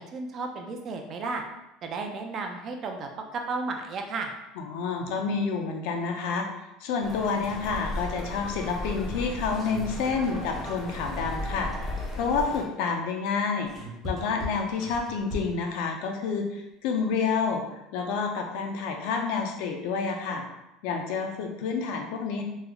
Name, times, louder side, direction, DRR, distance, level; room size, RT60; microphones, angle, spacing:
voice 1, 0.0-1.4 1.8-4.3, right 3 dB, 35° right, 3 dB, 0.4 m, -33 dB
voice 2, 4.6-6.5 6.8-13.7 14.0-17.6 17.9-20.4 20.8-22.4, left 5 dB, 70° left, 3 dB, 0.5 m, -29 dB
sound 1, 7.0-12.6, left 1 dB, 15° left, 0.6 m, -35 dB
sound 2, 9.2-11.6 13.3-15.7, left 1 dB, 20° right, 0.8 m, -40 dB
3.1 x 2.0 x 3.6 m, 0.91 s
cardioid pair, 155°, 0 cm